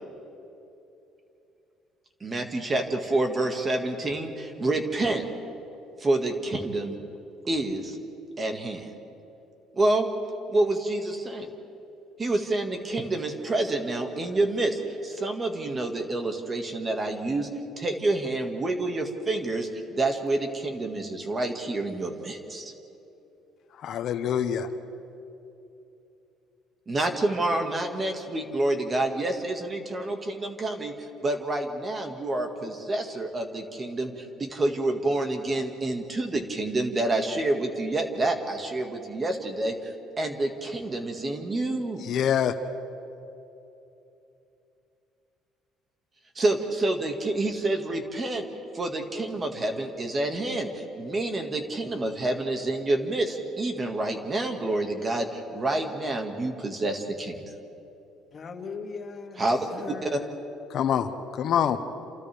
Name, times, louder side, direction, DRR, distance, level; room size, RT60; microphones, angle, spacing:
voice 1, 2.2-5.2 6.0-7.0 7.5-8.0 8.4-8.9 9.7-10.1 10.5-11.5 12.2-17.5 17.8-22.7 26.9-42.0 46.4-48.4 48.7-57.4 59.4-59.6 60.0-60.1, right 2 dB, 25° right, 1.9 m, -28 dB
voice 2, 23.8-24.7 42.0-42.5 60.7-61.8, left 9 dB, 60° left, 1.2 m, -25 dB
voice 3, 58.3-60.4, left 4 dB, 40° left, 2.3 m, -39 dB
29.0 x 27.5 x 3.5 m
cardioid pair, 110°, 0 cm